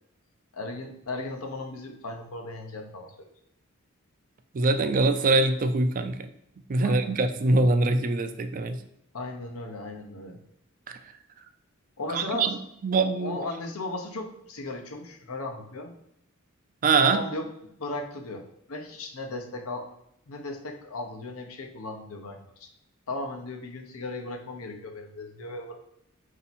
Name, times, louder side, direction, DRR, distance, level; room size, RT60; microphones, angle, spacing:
voice 1, 0.5-3.3 6.8-7.2 9.1-10.4 12.0-12.5 13.1-16.0 17.0-17.5 17.8-19.9 20.3-22.7 23.1-25.7, left 2 dB, 85° left, 3 dB, 0.8 m, -36 dB
voice 2, 4.5-6.3 6.7-8.8 10.9-11.0 12.1-12.5 12.8-13.4 16.8-17.2, right 3 dB, 40° right, 9 dB, 0.4 m, -23 dB
4.5 x 2.8 x 4.1 m, 0.76 s
head